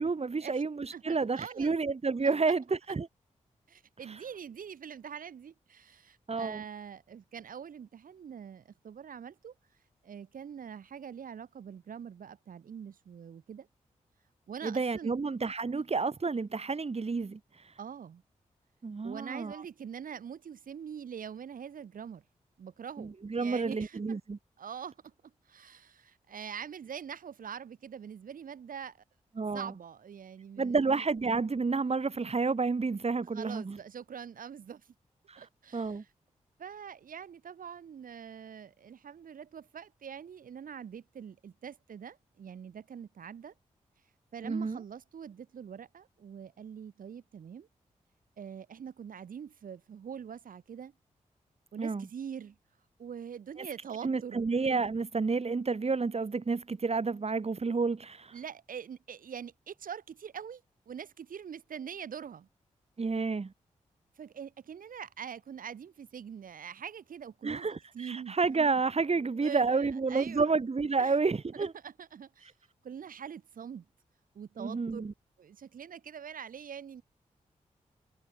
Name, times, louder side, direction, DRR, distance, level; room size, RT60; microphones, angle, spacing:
voice 1, 0.0-3.1 4.1-4.2 6.3-6.6 14.6-17.7 18.8-19.6 23.0-24.4 29.4-29.7 30.6-33.8 35.3-35.4 35.7-36.0 44.4-44.8 51.8-52.1 53.6-53.7 54.0-58.3 63.0-63.5 67.4-71.7 74.6-75.1, right 4 dB, 45° right, 3.2 m, -30 dB
voice 2, 0.9-1.8 2.2-2.3 2.9-3.0 3.7-9.5 10.0-13.7 14.5-15.1 17.8-18.2 19.0-22.2 22.6-24.2 24.6-25.1 25.5-29.0 29.5-31.0 33.3-34.9 35.4-36.1 36.6-43.5 44.3-47.7 48.4-50.9 51.7-52.6 53.0-54.5 58.3-62.5 64.2-67.7 67.9-68.4 69.1-70.5 71.0-71.1 71.5-72.5 72.8-73.8 74.3-75.0 75.4-77.0, right 7 dB, 75° right, 4.3 m, -44 dB
supercardioid pair, 40°, 14 cm